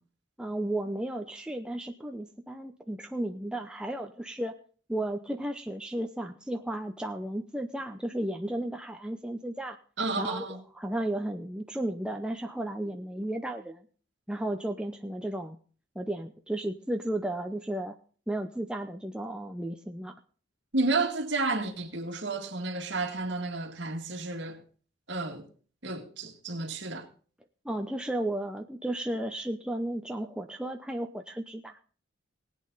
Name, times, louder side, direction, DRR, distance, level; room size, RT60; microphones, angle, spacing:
voice 1, 0.4-4.5 4.9-9.8 10.2-13.9 14.3-15.6 16.0-17.9 18.3-20.1 27.6-31.8, right 1 dB, 5° right, 0.6 m, -34 dB
voice 2, 10.0-10.6 20.7-24.6 25.1-25.5 25.8-27.1, right 3 dB, 60° right, 2.2 m, -31 dB
19.0 x 8.7 x 4.0 m
head